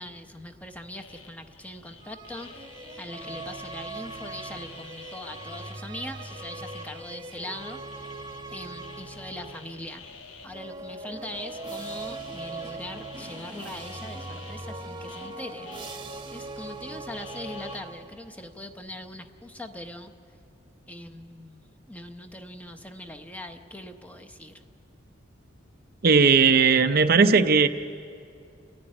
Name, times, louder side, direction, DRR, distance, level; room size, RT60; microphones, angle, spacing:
voice 1, 0.0-2.6 3.0-7.8 8.5-10.0 10.4-15.7 16.3-20.1 20.9-24.6, left 1 dB, 5° left, 6 dB, 0.8 m, -41 dB
sound 1, 0.9-5.8 6.0-8.4 8.8-10.5 11.3-15.3 15.7-16.0 16.3-16.4 17.2-17.8, left 5 dB, 80° left, 1.4 m, -48 dB
sound 2, 2.0-9.9 10.5-18.4, right 2 dB, 25° right, 1.0 m, -40 dB
voice 2, 26.0-27.7, right 5 dB, 50° right, 9 dB, 0.6 m, -18 dB
29.0 x 9.9 x 9.9 m, 2.4 s
head